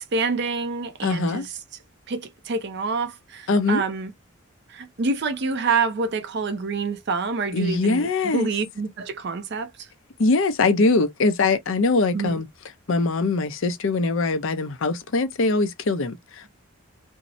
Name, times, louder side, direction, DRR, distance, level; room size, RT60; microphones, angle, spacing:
voice 1, 0.0-1.4 2.1-4.1 4.7-9.9 12.1-12.4, right 4 dB, 50° right, 0.4 m, -27 dB
voice 2, 1.0-1.5 3.5-3.8 7.5-8.5 10.2-12.5 12.9-16.5, left 3 dB, 60° left, 0.5 m, -22 dB
2.6 x 2.0 x 2.5 m
head